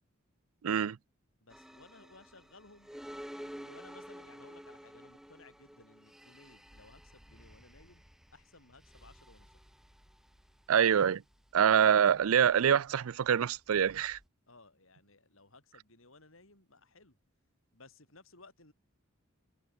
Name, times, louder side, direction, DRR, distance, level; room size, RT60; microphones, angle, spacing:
voice 1, 0.6-1.0 10.7-11.2 11.5-14.2, right 8 dB, 85° right, 0.4 m, -25 dB
voice 2, 1.4-2.9 3.4-8.0 8.3-9.7 14.5-17.2 17.7-18.7, left 3 dB, 70° left, 6.6 m, -58 dB
sound 1, 1.5-14.3, equal, ahead, 1.6 m, -52 dB
head